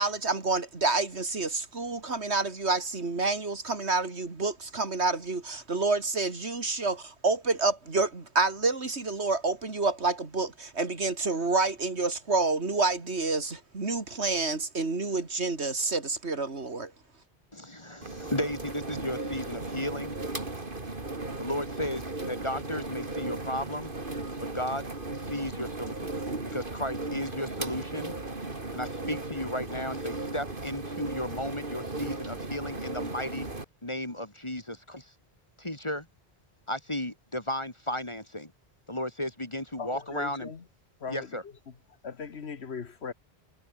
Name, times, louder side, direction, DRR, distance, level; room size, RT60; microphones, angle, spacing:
voice 1, 0.0-16.9, right 3 dB, 85° right, 3.1 m, -28 dB
voice 2, 17.5-20.2 21.4-23.9 24.4-24.8 25.2-26.1 26.5-28.1 28.7-33.5 33.8-35.1 35.6-36.1 36.7-38.5 38.9-40.5 41.1-41.4, left 1 dB, 25° left, 2.7 m, -34 dB
sound 1, 18.0-33.6, right 2 dB, 55° right, 3.3 m, -36 dB
voice 3, 39.8-40.6 41.0-41.2 42.0-43.1, left 6 dB, 75° left, 1.6 m, -38 dB
omnidirectional pair, 1.1 m